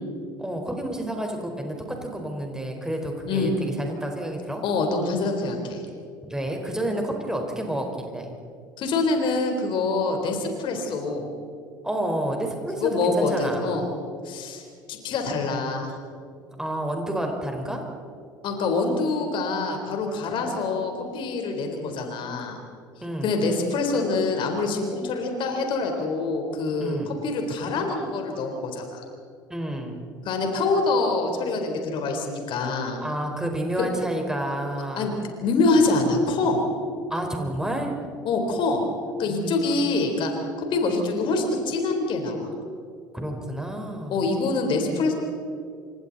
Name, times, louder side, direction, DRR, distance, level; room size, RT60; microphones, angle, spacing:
voice 1, 0.4-4.6 6.2-8.3 11.8-13.7 16.6-17.8 23.0-23.4 26.8-27.1 29.5-30.0 33.0-35.2 37.1-38.0 39.3-39.9 43.1-44.3, right 1 dB, 5° right, 2 dB, 4.7 m, -30 dB
voice 2, 4.6-5.8 8.8-11.3 12.8-13.8 14.2-14.6 14.9-15.9 18.4-22.6 23.2-29.0 30.2-33.0 33.8-33.9 35.0-35.1 35.4-36.6 38.2-38.8 39.2-40.3 40.7-42.5 44.1-45.1, left 3 dB, 50° left, 3 dB, 4.2 m, -25 dB
29.0 x 26.5 x 4.2 m, 2.4 s
figure-of-eight pair, 65°, 11 cm